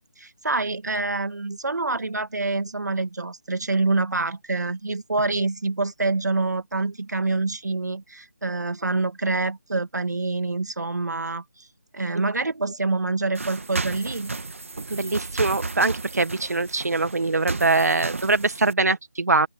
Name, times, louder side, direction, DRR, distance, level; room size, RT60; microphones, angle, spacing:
voice 1, 0.2-11.7 11.9-14.3, right 3 dB, 90° right, 1.9 m, -26 dB
sound 1, 13.3-18.7, right 3 dB, 50° right, 2.1 m, -33 dB
voice 2, 14.9-19.5, right 3 dB, 70° right, 1.4 m, -23 dB
open air
figure-of-eight pair, 180°, 9 cm